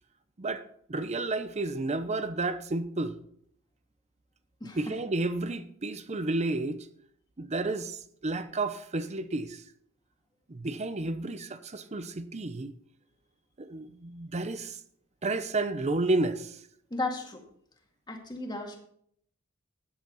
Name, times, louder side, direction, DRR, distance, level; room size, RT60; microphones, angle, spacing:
voice 1, 0.9-3.1 4.8-6.8 7.4-9.6 10.5-12.7 13.6-14.7 15.2-16.5, right 2 dB, 30° right, 0.7 m, -31 dB
voice 2, 4.6-5.0 16.9-17.4 18.1-18.8, left 2 dB, 20° left, 2.1 m, -34 dB
14.0 x 9.2 x 4.1 m
head